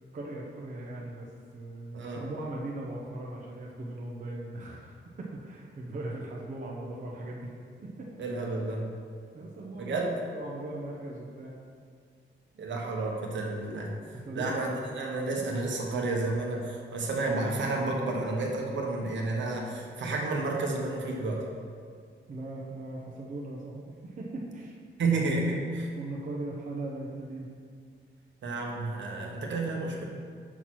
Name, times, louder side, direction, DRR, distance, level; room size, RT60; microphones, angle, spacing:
voice 1, 0.1-7.6 7.8-8.1 9.3-11.6 14.3-14.6 22.3-24.7 25.9-27.5, right 2 dB, 40° right, -3 dB, 0.7 m, -39 dB
voice 2, 1.9-2.3 8.2-9.0 9.8-10.0 12.6-13.9 14.3-21.5 25.0-25.9 28.4-30.0, right 2 dB, 70° right, 0 dB, 1.1 m, -31 dB
5.9 x 4.2 x 6.1 m, 2.1 s
wide cardioid pair, 170°, 20 cm